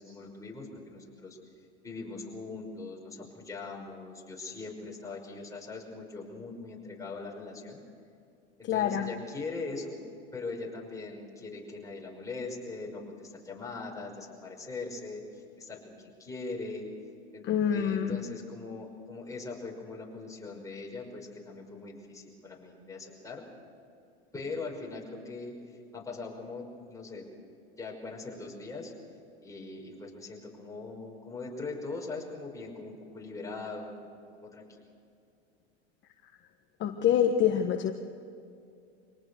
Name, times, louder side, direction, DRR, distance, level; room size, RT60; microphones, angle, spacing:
voice 1, 0.0-1.4 1.8-7.8 8.6-10.0 10.3-16.9 17.3-17.4 17.7-23.4 24.3-25.5 25.9-27.3 27.8-28.9 29.4-34.7, left 3 dB, 10° left, -1 dB, 5.7 m, -41 dB
voice 2, 8.6-9.1 17.4-18.3 36.8-37.9, left 9 dB, 35° left, 5 dB, 1.4 m, -26 dB
25.5 x 19.0 x 6.4 m, 2.5 s
hypercardioid pair, 110°, 33 cm